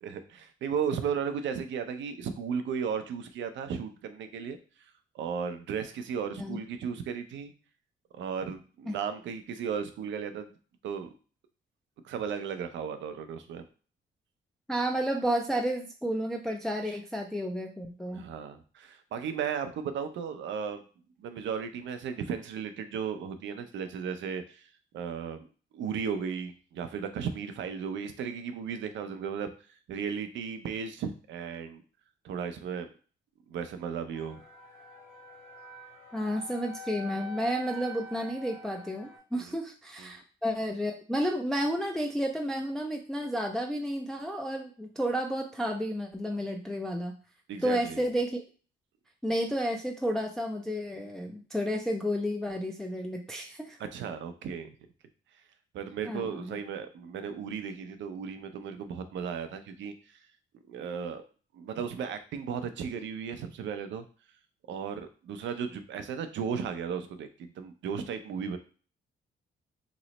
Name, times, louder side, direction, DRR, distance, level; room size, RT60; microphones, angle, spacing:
voice 1, 0.0-4.6 5.1-7.5 8.1-10.5 10.8-11.1 12.0-13.6 16.9-17.0 18.1-20.8 21.2-24.7 24.9-25.4 25.7-29.5 29.9-31.8 32.2-32.9 33.5-34.4 39.3-39.5 40.0-40.1 47.5-48.0 53.9-54.7 55.7-59.9 60.7-61.2 61.5-64.0 64.7-68.6, right 7 dB, 70° right, 8 dB, 0.5 m, -35 dB
voice 2, 14.7-18.3 36.1-47.1 47.6-48.4 49.2-53.8 56.1-56.6, equal, ahead, 2 dB, 0.4 m, -31 dB
sound 1, 34.1-39.2, left 1 dB, 50° left, 1.3 m, -45 dB
3.0 x 2.0 x 3.9 m, 0.39 s
cardioid pair, 90°, 20 cm